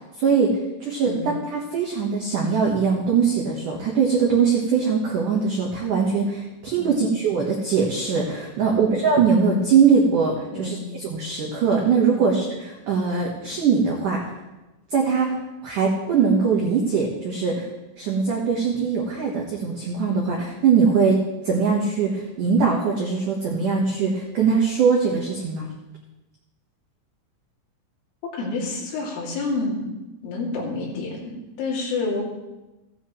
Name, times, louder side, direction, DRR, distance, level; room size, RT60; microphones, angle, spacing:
voice 1, 0.2-10.8 11.1-12.5 12.9-14.2 14.9-15.4 15.6-17.7 18.0-25.7, right 5 dB, 80° right, -2 dB, 1.8 m, -21 dB
voice 2, 8.6-8.9 10.5-10.8 12.1-12.3 28.3-29.9 30.2-32.2, left 3 dB, 75° left, -4 dB, 5.0 m, -29 dB
16.0 x 10.0 x 3.2 m, 1.0 s
omnidirectional pair, 5.7 m